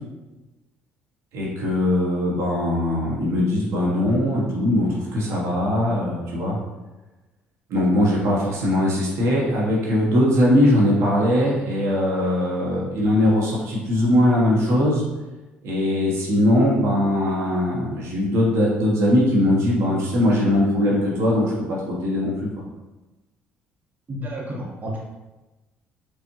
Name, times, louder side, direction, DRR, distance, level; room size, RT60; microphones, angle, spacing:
voice 1, 1.3-6.6 7.7-15.0 15.6-21.4 21.9-22.5, left 1 dB, 65° right, -5 dB, 1.1 m, -20 dB
voice 2, 24.1-25.0, equal, 35° right, -3 dB, 1.1 m, -31 dB
4.6 x 2.5 x 3.0 m, 1.1 s
hypercardioid pair, 60°, 5 cm